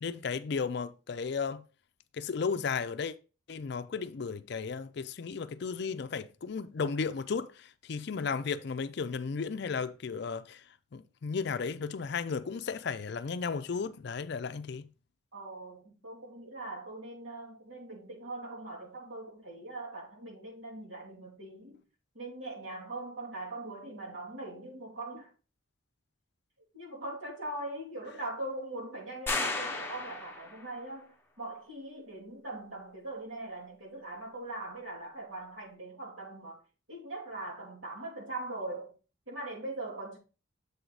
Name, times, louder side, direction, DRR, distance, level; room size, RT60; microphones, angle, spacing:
voice 1, 0.0-1.6 2.2-3.1 3.5-10.6 10.9-14.9, left 5 dB, 55° left, 0.4 m, -34 dB
voice 2, 15.3-21.8 22.1-25.3 26.7-31.1 31.4-36.6 36.9-38.9 39.3-40.2, right 2 dB, 75° right, 2.7 m, -41 dB
sound 1, 29.3-30.8, left 3 dB, 10° left, 0.8 m, -34 dB
7.1 x 4.6 x 3.9 m
head